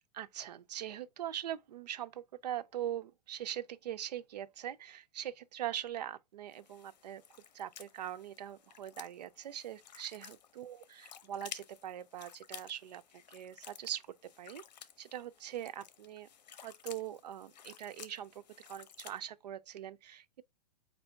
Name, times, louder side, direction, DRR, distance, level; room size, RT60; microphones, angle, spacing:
voice 1, 0.1-7.2 7.5-10.8 11.3-13.0 13.3-14.0 14.4-14.6 15.0-16.3 16.6-18.4 18.7-20.4, right 11 dB, 75° right, 0.5 m, -42 dB
sound 1, 6.5-19.2, left 9 dB, 85° left, 0.7 m, -54 dB
4.4 x 2.6 x 4.3 m
hypercardioid pair, 180°, 21 cm